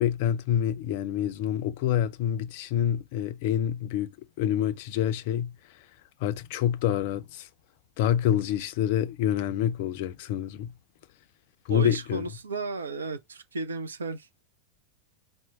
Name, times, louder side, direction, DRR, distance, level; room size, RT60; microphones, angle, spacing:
voice 1, 0.0-4.1 4.4-5.9 6.2-7.5 8.0-10.7 11.7-12.3, left 10 dB, 50° left, 0.4 m, -27 dB
voice 2, 11.7-14.4, right 3 dB, 70° right, 0.5 m, -34 dB
4.4 x 2.1 x 4.2 m
figure-of-eight pair, 90°, 0 cm